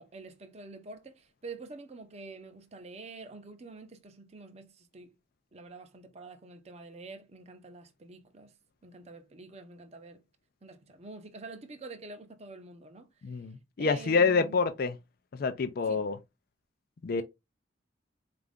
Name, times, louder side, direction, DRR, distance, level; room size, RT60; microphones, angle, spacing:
voice 1, 0.0-5.1 5.5-8.5 8.8-10.2 10.6-13.1 13.8-14.6 15.9-16.1 17.1-17.2, right 3 dB, 35° right, 0.6 m, -47 dB
voice 2, 13.2-15.0 15.3-16.2 17.0-17.2, left 5 dB, 50° left, 0.4 m, -27 dB
4.4 x 2.5 x 3.5 m
head